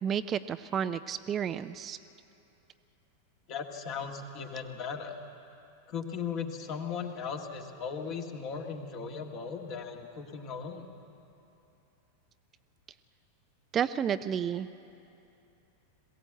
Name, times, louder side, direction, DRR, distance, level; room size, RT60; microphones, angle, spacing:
voice 1, 0.0-2.0 13.7-14.7, right 8 dB, 25° right, 12 dB, 0.4 m, -31 dB
voice 2, 3.5-5.1 5.9-10.8, left 6 dB, 40° left, 3 dB, 1.9 m, -37 dB
21.5 x 16.0 x 8.0 m, 2.8 s
figure-of-eight pair, 90°, 0 cm